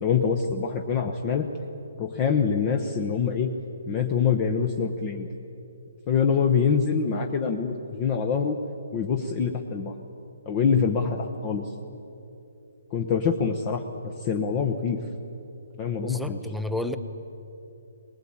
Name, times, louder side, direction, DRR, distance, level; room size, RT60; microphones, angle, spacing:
voice 1, 0.0-1.5 2.0-3.5 3.9-5.3 6.1-8.6 8.9-9.9 10.5-11.7 12.9-15.0 15.8-16.4, left 6 dB, 20° left, 4 dB, 1.0 m, -25 dB
voice 2, 16.0-17.0, left 1 dB, ahead, 8 dB, 0.8 m, -31 dB
23.5 x 20.5 x 8.7 m, 2.9 s
hypercardioid pair, 170°, 0 cm